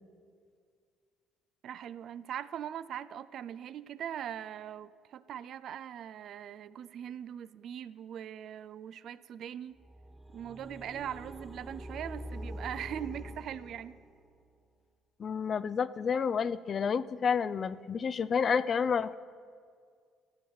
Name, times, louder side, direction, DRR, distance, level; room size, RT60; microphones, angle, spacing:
voice 1, 1.6-9.8 10.3-14.0, right 9 dB, 55° right, 16 dB, 0.4 m, -41 dB
sound 1, 9.8-14.4, equal, 15° right, 1.4 m, -45 dB
voice 2, 15.2-19.1, left 6 dB, 45° left, 16 dB, 0.4 m, -30 dB
14.0 x 7.6 x 5.6 m, 2.1 s
figure-of-eight pair, 50°, 0 cm